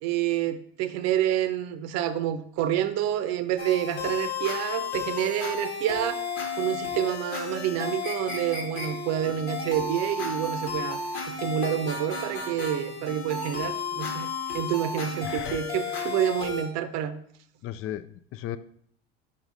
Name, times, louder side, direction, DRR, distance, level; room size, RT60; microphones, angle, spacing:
voice 1, 0.0-6.2 6.6-17.2, right 11 dB, 55° right, 11 dB, 0.6 m, -28 dB
sound 1, 3.6-16.6, left 4 dB, 80° left, 1.7 m, -33 dB
voice 2, 15.2-15.6 16.0-16.1 17.6-18.6, left 12 dB, 45° left, 14 dB, 0.4 m, -36 dB
5.4 x 4.7 x 4.0 m, 0.64 s
hypercardioid pair, 80°, 32 cm